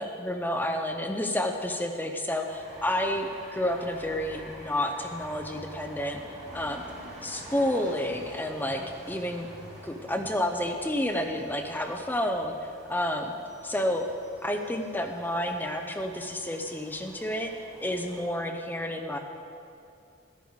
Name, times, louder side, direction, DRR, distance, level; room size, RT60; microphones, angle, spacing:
voice 1, 0.0-6.2 6.5-6.8 7.2-8.8 9.1-9.5 9.8-12.5 12.9-13.3 13.6-14.0 14.4-17.5 17.8-19.2, left 1 dB, 10° left, 3 dB, 0.7 m, -30 dB
sound 1, 2.5-18.2, right 1 dB, 40° right, 2.4 m, -48 dB
13.0 x 10.0 x 4.1 m, 2.5 s
head